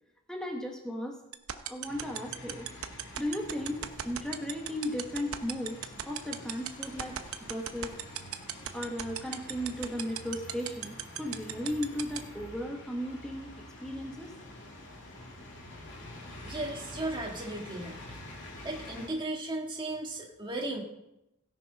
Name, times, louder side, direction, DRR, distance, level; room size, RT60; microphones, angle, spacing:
voice 1, 0.3-1.2 1.6-2.7 3.2-7.2 7.5-7.9 8.7-13.5 13.8-14.3, left 1 dB, 5° left, 1 dB, 1.1 m, -36 dB
sound 1, 1.3-12.2, right 11 dB, 75° right, 0.8 m, -34 dB
sound 2, 1.8-19.1, left 1 dB, 55° left, 2.7 m, -47 dB
voice 2, 16.4-18.0 18.6-20.8, right 2 dB, 20° right, 0 dB, 1.8 m, -35 dB
16.5 x 6.1 x 5.2 m, 0.86 s
head